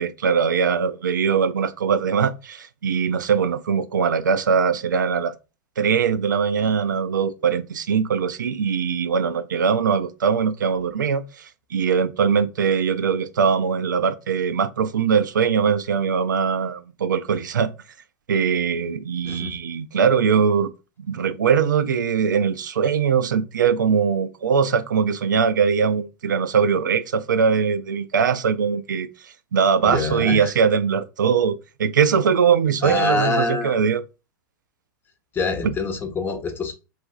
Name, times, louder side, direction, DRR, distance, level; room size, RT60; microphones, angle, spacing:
voice 1, 0.0-5.3 5.8-17.7 18.3-20.7 21.1-34.0 35.6-35.7, right 6 dB, 85° right, 0.4 m, -21 dB
voice 2, 19.2-19.6 29.8-30.5 32.8-33.8 35.3-36.7, left 3 dB, 20° left, 0.8 m, -25 dB
4.1 x 2.4 x 2.3 m
hypercardioid pair, 100°, 10 cm